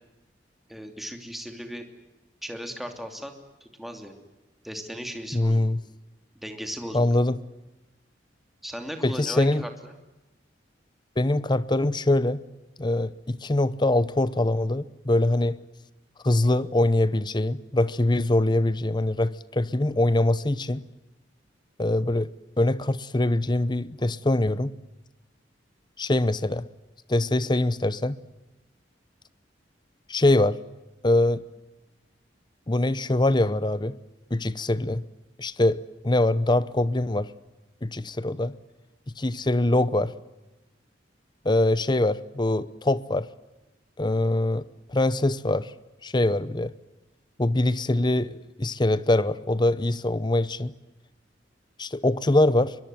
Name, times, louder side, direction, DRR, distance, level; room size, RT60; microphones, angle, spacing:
voice 1, 0.7-1.9 2.4-3.3 3.6-4.1 4.6-5.7 6.3-7.1 8.6-9.9, equal, ahead, 2.8 m, -37 dB
voice 2, 5.3-5.8 6.9-7.4 9.0-9.6 11.2-12.4 12.8-15.6 16.2-20.9 21.8-22.3 22.6-24.7 26.0-26.7 27.1-28.2 30.1-30.6 31.0-31.4 32.7-34.0 34.3-35.1 35.4-37.3 37.8-38.6 39.2-40.1 41.4-43.3 44.0-45.7 46.0-46.7 47.4-50.7 51.8-52.8, left 1 dB, 25° left, 0.8 m, -23 dB
23.5 x 22.5 x 9.2 m
head